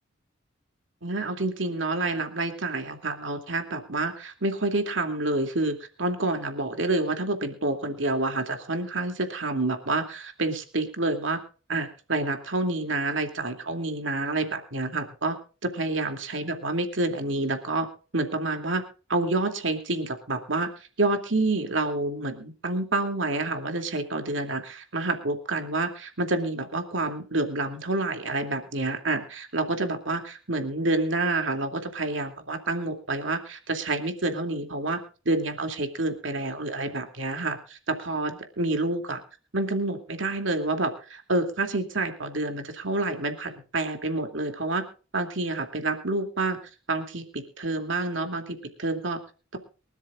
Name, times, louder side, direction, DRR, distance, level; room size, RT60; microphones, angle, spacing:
voice 1, 1.0-11.4 11.7-17.9 18.1-18.8 19.1-20.7 21.0-35.0 35.3-39.2 39.5-44.8 45.1-46.6 46.9-49.2, right 2 dB, 75° right, 6 dB, 2.6 m, -28 dB
24.0 x 13.0 x 2.4 m, 0.36 s
head